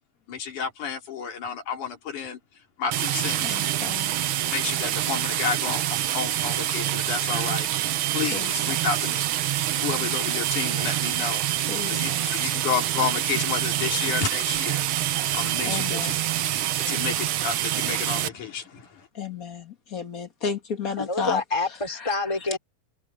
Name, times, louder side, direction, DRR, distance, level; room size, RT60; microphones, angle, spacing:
voice 1, 0.3-3.6 4.4-9.3 9.8-11.5 11.8-16.2 16.8-19.1, left 6 dB, 90° left, 4.6 m, -31 dB
sound 1, 2.9-18.3, right 12 dB, 70° right, 1.3 m, -26 dB
voice 2, 3.4-4.1 8.3-8.5 11.7-12.2 15.7-16.1 19.2-21.4 22.1-22.2, left 5 dB, 35° left, 1.7 m, -32 dB
voice 3, 21.0-22.6, left 3 dB, 10° left, 3.7 m, -27 dB
omnidirectional pair, 3.4 m